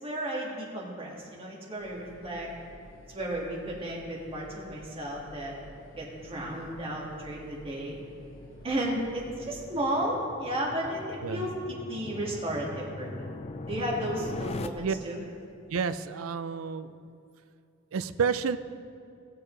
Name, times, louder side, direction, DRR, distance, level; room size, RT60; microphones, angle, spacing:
voice 1, 0.0-2.5 3.1-5.5 6.0-8.0 8.6-13.2 13.6-15.2, right 1 dB, 30° right, -4 dB, 2.0 m, -33 dB
sound 1, 1.8-9.6, left 1 dB, 55° left, 2.5 m, -52 dB
sound 2, 4.6-14.7, left 3 dB, 30° left, 0.4 m, -42 dB
voice 2, 15.7-16.9 17.9-18.6, right 6 dB, 85° right, 12 dB, 0.5 m, -30 dB
18.0 x 6.7 x 3.3 m, 2.5 s
head